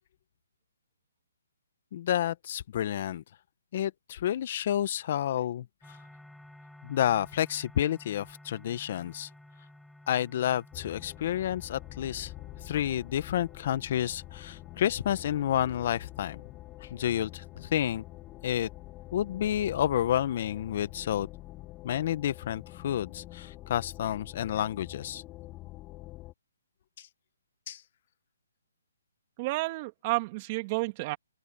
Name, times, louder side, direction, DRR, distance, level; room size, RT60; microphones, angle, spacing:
voice 1, 1.9-3.2 3.7-5.7 6.8-9.3 10.1-12.3 12.6-16.4 16.8-18.0 18.4-18.7 19.1-21.3 21.8-25.2 27.0-27.1 27.7-27.8, left 11 dB, 45° left, 1.2 m, -30 dB
sound 1, 5.8-23.5, left 1 dB, ahead, 7.3 m, -57 dB
sound 2, 10.7-26.3, left 18 dB, 20° left, 3.2 m, -46 dB
voice 2, 29.4-31.2, right 23 dB, 30° right, 2.7 m, -31 dB
open air
hypercardioid pair, 150°, 0 cm